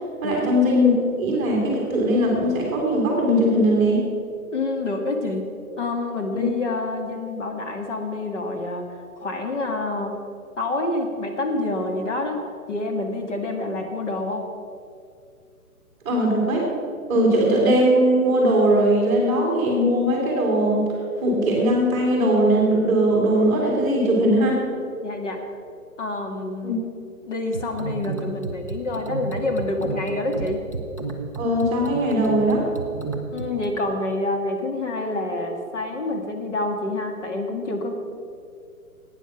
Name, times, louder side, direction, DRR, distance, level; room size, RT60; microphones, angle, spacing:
voice 1, 0.2-0.9 1.2-4.0 6.3-6.4 16.0-16.6 17.1-20.9 21.2-24.6 26.6-26.7 31.4-32.6, equal, 10° right, -2 dB, 1.7 m, -20 dB
voice 2, 4.5-5.4 5.8-8.9 9.2-10.1 10.6-12.4 12.7-14.4 25.0-25.4 26.0-26.8 27.3-30.6 33.3-37.9, left 2 dB, 50° left, 2 dB, 1.8 m, -27 dB
sound 1, 27.5-33.7, right 3 dB, 20° left, 0.5 m, -32 dB
12.0 x 9.1 x 5.9 m, 2.4 s
hypercardioid pair, 170°, 45 cm